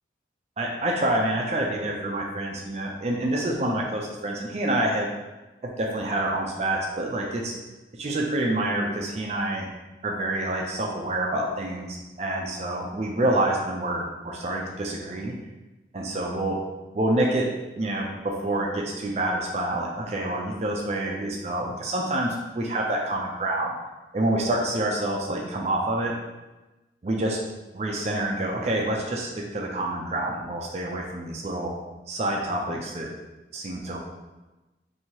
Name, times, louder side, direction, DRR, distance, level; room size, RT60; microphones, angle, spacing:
voice 1, 0.6-5.1 5.6-7.5 8.0-9.7 10.0-15.3 15.9-16.6 16.9-17.5 17.8-23.7 24.1-26.1 27.0-27.4 27.7-31.7 32.1-33.1 33.5-34.0, right 1 dB, 35° right, 0 dB, 0.4 m, -27 dB
2.8 x 2.7 x 4.4 m, 1.1 s
head